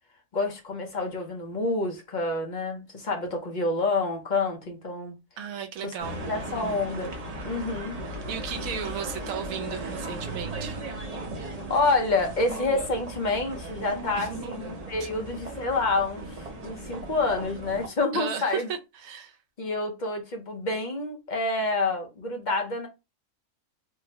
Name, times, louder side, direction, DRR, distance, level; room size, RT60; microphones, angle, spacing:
voice 1, 0.3-5.2 5.8-5.9 6.3-7.1 7.4-8.0 11.7-18.7 19.6-22.9, left 3 dB, 45° left, 0.6 m, -28 dB
voice 2, 5.4-6.8 8.3-10.8 14.2-14.5 15.0-15.1 18.1-19.4, right 7 dB, 80° right, 1.1 m, -35 dB
sound 1, 6.0-17.9, right 2 dB, 35° right, 0.7 m, -37 dB
3.7 x 2.0 x 2.7 m
omnidirectional pair, 1.4 m